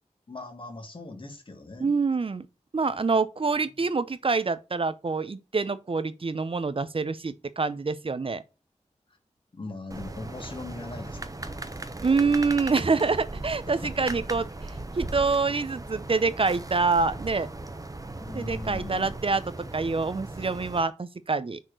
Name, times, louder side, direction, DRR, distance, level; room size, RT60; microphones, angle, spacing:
voice 1, 0.3-1.9 9.5-11.9 13.7-14.1 18.1-19.1, left 2 dB, 45° left, 1.9 m, -40 dB
voice 2, 1.8-2.5 2.7-8.4 12.0-17.5 18.3-21.6, right 4 dB, 45° right, 0.7 m, -26 dB
sound 1, 9.9-20.8, right 2 dB, 30° right, 1.0 m, -38 dB
6.2 x 4.3 x 6.5 m
wide cardioid pair, 95°, 12 cm